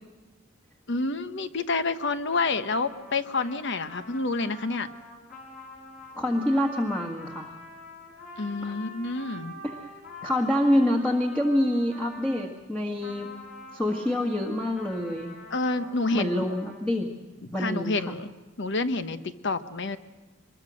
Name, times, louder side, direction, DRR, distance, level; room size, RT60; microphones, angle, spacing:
voice 1, 0.9-4.9 8.4-9.5 15.5-16.6 17.4-18.3 18.6-20.0, left 3 dB, 55° left, 11 dB, 1.1 m, -28 dB
Trumpet, 2.3-12.5 13.0-16.8, left 1 dB, 40° left, 5.8 m, -46 dB
voice 2, 6.2-7.5 8.6-8.8 9.6-9.8 10.2-13.3 13.7-15.3 16.1-17.1 17.5-18.1, left 1 dB, 5° left, 0 dB, 1.7 m, -26 dB
24.5 x 22.0 x 6.4 m, 1.2 s
head